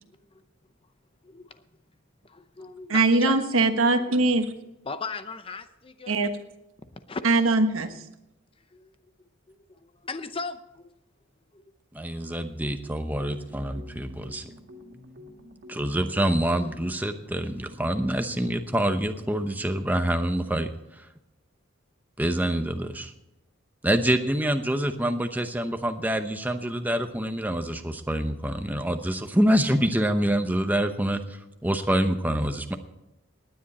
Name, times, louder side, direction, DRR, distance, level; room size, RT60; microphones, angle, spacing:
voice 1, 1.2-1.6 2.2-3.4 4.8-6.2 7.1-7.2 8.7-10.9 11.5-11.6, left 4 dB, 25° left, 11 dB, 0.7 m, -38 dB
voice 2, 2.9-4.5 6.1-6.3 7.2-8.0, right 2 dB, 80° right, 7 dB, 1.3 m, -21 dB
voice 3, 11.9-14.4 15.7-20.7 22.2-23.1 23.8-32.7, right 1 dB, 10° right, 7 dB, 0.8 m, -26 dB
sound 1, 13.0-20.7, left 2 dB, 50° right, 2.2 m, -49 dB
18.5 x 10.0 x 4.2 m, 0.89 s
head